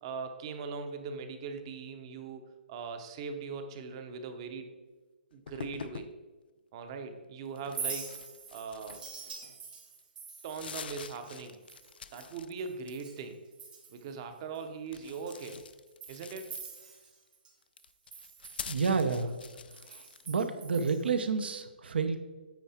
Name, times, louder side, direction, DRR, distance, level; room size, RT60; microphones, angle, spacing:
voice 1, 0.0-4.7 5.3-6.1 6.7-8.2 8.5-9.1 10.4-11.6 12.1-13.4 13.9-15.6 16.1-16.5, right 5 dB, 30° right, 7 dB, 0.7 m, -40 dB
sound 1, 5.5-6.2 7.6-9.5 10.0-10.1 10.4-12.5 12.8-13.3 14.9-16.9 17.6-20.3, left 7 dB, 65° left, 0.4 m, -46 dB
Chink clink, 7.6-13.2 13.5-14.1 14.5-14.6 15.1-17.5 17.8-21.2, right 5 dB, 55° right, 2.5 m, -45 dB
voice 2, 18.6-19.4 19.9-22.2, right 5 dB, 75° right, 10 dB, 0.8 m, -30 dB
9.2 x 4.8 x 4.3 m, 1.3 s
hypercardioid pair, 170°, 6 cm